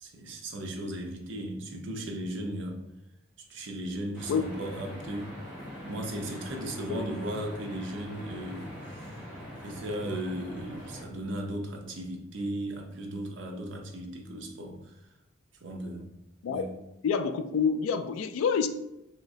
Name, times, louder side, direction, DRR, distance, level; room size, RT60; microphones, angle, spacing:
voice 1, 0.0-2.8 3.4-5.3 5.8-9.2 9.6-15.0 15.6-16.1 16.5-16.6, right 1 dB, 65° right, 2 dB, 0.5 m, -36 dB
sound 1, 4.1-11.0, equal, 5° right, 1.1 m, -43 dB
voice 2, 17.0-18.7, left 6 dB, 90° left, 10 dB, 0.3 m, -27 dB
3.1 x 2.9 x 2.6 m, 0.88 s
head